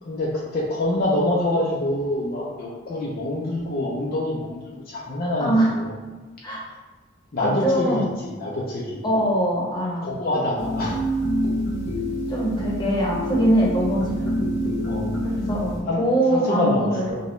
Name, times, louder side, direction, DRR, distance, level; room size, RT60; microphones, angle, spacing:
voice 1, 0.0-4.6 4.9-5.9 7.3-8.0 8.4-9.0 10.0-11.0 14.8-15.2 15.9-16.0 16.3-17.2, left 1 dB, 55° left, -4 dB, 0.6 m, -25 dB
voice 2, 5.4-5.7 6.4-6.6 7.4-8.1 9.0-10.1 12.3-14.3 15.2-17.1, right 1 dB, 25° left, -4 dB, 0.9 m, -23 dB
sound 1, 10.6-15.8, equal, 70° left, 1.0 m, -26 dB
5.1 x 2.3 x 3.1 m, 1.3 s
head